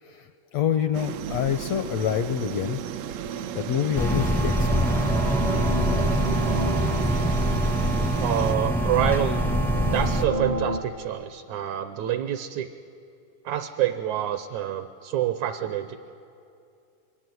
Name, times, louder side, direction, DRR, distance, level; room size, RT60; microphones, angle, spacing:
voice 1, 0.0-2.8 3.3-4.9, left 9 dB, 80° left, 9 dB, 1.5 m, -27 dB
sound 1, 0.9-8.6, right 10 dB, 90° right, 1.4 m, -34 dB
sound 2, 3.9-10.2, right 1 dB, 5° left, 0.3 m, -24 dB
sound 3, 4.7-10.8, right 2 dB, 45° right, 0.7 m, -33 dB
voice 2, 8.2-9.4 9.9-12.7 13.5-16.0, right 11 dB, 75° right, 10 dB, 1.9 m, -27 dB
26.0 x 22.5 x 9.3 m, 2.6 s
omnidirectional pair, 3.9 m